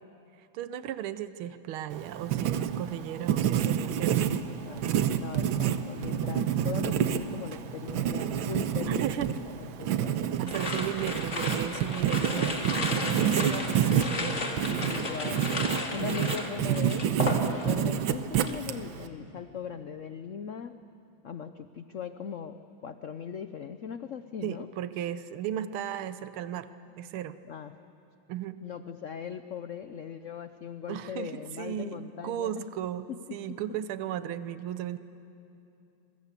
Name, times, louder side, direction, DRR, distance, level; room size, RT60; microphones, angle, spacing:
voice 1, 0.4-4.4 5.4-5.6 8.9-9.3 10.4-14.4 16.0-16.1 24.4-26.7 27.0-27.4 28.3-28.6 30.9-35.0, right 10 dB, 90° right, 13 dB, 1.6 m, -35 dB
Writing, 1.9-19.1, right 9 dB, 75° right, 1.6 m, -29 dB
voice 2, 4.3-4.9 5.1-9.1 9.6-10.2 14.7-15.5 15.9-20.7 21.2-24.7 27.5-27.7 28.6-32.6, left 7 dB, 85° left, 10 dB, 0.6 m, -39 dB
sound 1, 10.5-17.9 18.2-18.6, left 2 dB, 35° left, 2.2 m, -34 dB
26.5 x 23.0 x 8.2 m, 2.7 s
omnidirectional pair, 2.3 m